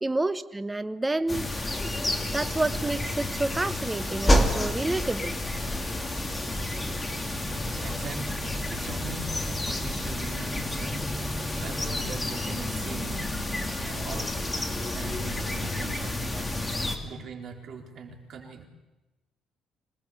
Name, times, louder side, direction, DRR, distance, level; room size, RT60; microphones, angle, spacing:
voice 1, 0.0-1.5 2.3-5.4, right 2 dB, 10° right, 12 dB, 1.0 m, -29 dB
sound 1, 1.3-17.0, left 1 dB, 10° left, 2.6 m, -29 dB
voice 2, 7.8-11.0 11.6-13.4 13.8-14.4 14.9-16.3 16.8-18.7, right 4 dB, 50° right, 3 dB, 4.2 m, -41 dB
26.5 x 19.0 x 8.3 m, 1.1 s
cardioid pair, 130°, 0 cm